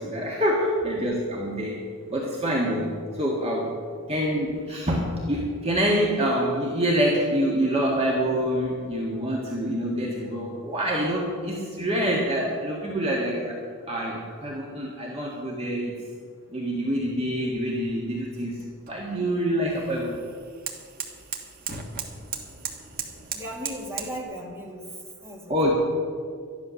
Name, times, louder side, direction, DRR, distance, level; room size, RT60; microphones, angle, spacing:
voice 1, 0.0-1.8 2.1-3.7 4.1-13.6 13.9-15.9 16.5-18.6 18.9-20.2 25.5-25.7, equal, 30° right, -3 dB, 1.8 m, -26 dB
sound 1, 17.4-24.2, right 5 dB, 45° right, 1.5 m, -38 dB
voice 2, 23.3-24.8 25.2-25.7, equal, 10° right, -3 dB, 2.4 m, -36 dB
13.0 x 11.0 x 6.4 m, 2.1 s
head